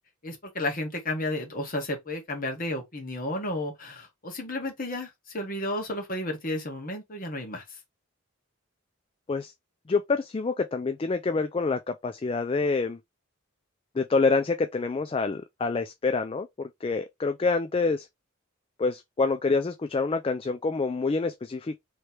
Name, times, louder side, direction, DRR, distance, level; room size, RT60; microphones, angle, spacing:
voice 1, 0.2-7.6, left 1 dB, 40° left, 1.5 m, -32 dB
voice 2, 9.9-13.0 14.0-18.1 18.8-21.8, left 4 dB, 25° left, 0.3 m, -27 dB
3.2 x 3.2 x 4.2 m
head